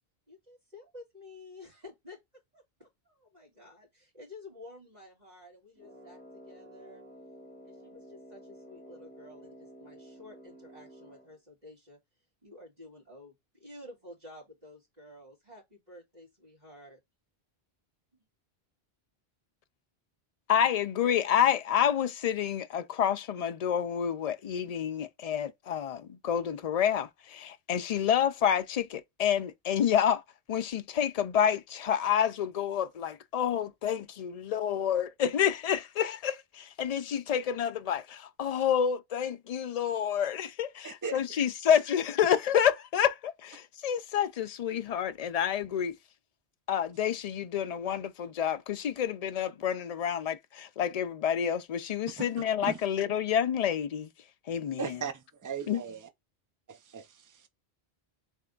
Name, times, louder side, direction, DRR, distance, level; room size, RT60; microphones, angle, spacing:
voice 1, 0.3-7.0 7.6-12.0 12.4-17.0, left 2 dB, 40° right, 2.4 m, -51 dB
Brass instrument, 5.7-11.4, equal, 10° left, 2.0 m, -51 dB
voice 2, 20.5-30.2 30.5-46.0 46.7-54.1 54.5-55.0 55.7-55.8, left 9 dB, 55° left, 0.4 m, -28 dB
voice 3, 40.8-41.2 52.2-52.3 52.6-52.8 54.8-55.1 55.4-56.1 56.7-57.1, right 5 dB, 25° right, 0.5 m, -36 dB
3.5 x 3.4 x 3.8 m
omnidirectional pair, 1.1 m